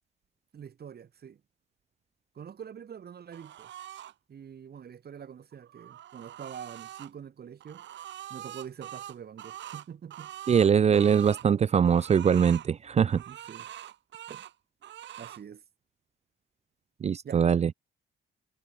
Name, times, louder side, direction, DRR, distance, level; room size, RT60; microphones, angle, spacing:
voice 1, 0.5-1.4 2.3-3.7 4.3-7.9 8.3-10.3 13.3-13.7 14.3-14.5 15.2-15.6 17.2-17.7, right 8 dB, 50° right, 4.0 m, -45 dB
sound 1, 3.3-4.1 5.5-7.1 7.6-11.5 11.8-12.7 13.1-14.5 14.8-15.4, right 12 dB, 70° right, 1.2 m, -44 dB
voice 2, 10.5-13.2 17.0-17.7, right 7 dB, 35° right, 0.4 m, -22 dB
cardioid pair, 90°, 20 cm